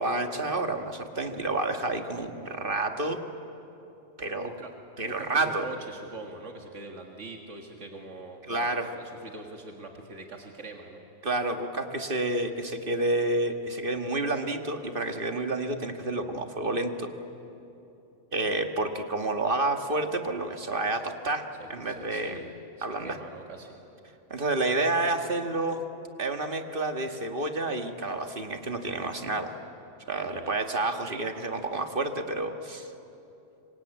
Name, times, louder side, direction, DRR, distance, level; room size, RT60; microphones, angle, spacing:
voice 1, 0.0-3.2 4.2-4.5 5.0-5.7 8.5-8.9 11.2-17.1 18.3-22.4 22.8-23.2 24.3-25.8 26.2-29.5 30.1-32.9, right 2 dB, 50° right, 5 dB, 1.8 m, -29 dB
voice 2, 4.4-11.0 21.6-22.5 22.8-23.8 30.2-30.5, right 2 dB, 85° right, 2 dB, 2.2 m, -43 dB
27.0 x 24.5 x 9.0 m, 2.9 s
omnidirectional pair, 1.2 m